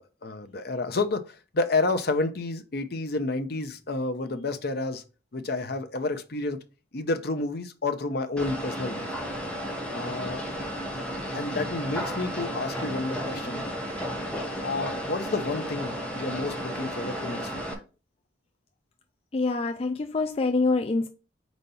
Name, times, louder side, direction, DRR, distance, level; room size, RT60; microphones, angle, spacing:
voice 1, 0.0-5.0 5.3-6.6 6.9-9.1 9.9-10.5 11.3-13.7 14.6-17.6, left 3 dB, 55° left, 0.7 m, -30 dB
sound 1, 8.4-17.7, equal, 5° left, 1.0 m, -33 dB
voice 2, 19.3-21.1, left 3 dB, 30° left, 0.3 m, -25 dB
4.4 x 4.1 x 5.4 m
head